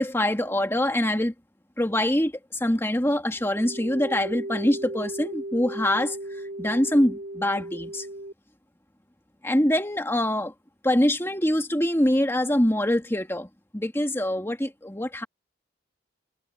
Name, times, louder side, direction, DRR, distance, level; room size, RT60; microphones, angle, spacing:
voice 1, 0.0-1.3 1.8-6.2 6.6-8.1 9.4-10.5 10.8-13.5 13.7-15.3, left 1 dB, 15° left, 2.0 m, -24 dB
sound 1, 3.4-8.3, right 1 dB, 60° right, 3.7 m, -36 dB
head